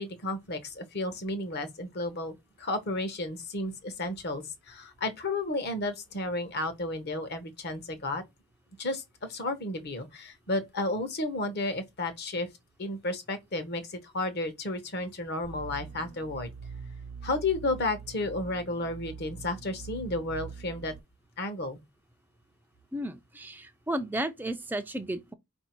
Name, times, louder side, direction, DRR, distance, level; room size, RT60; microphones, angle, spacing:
voice 1, 0.0-8.2 8.8-12.5 12.8-16.5 17.2-20.9 21.4-21.8, left 2 dB, 50° left, 0.9 m, -32 dB
sound 1, 15.4-21.0, right 5 dB, 65° right, 0.5 m, -43 dB
voice 2, 22.9-25.3, right 1 dB, 10° right, 0.3 m, -33 dB
4.5 x 2.6 x 4.4 m
head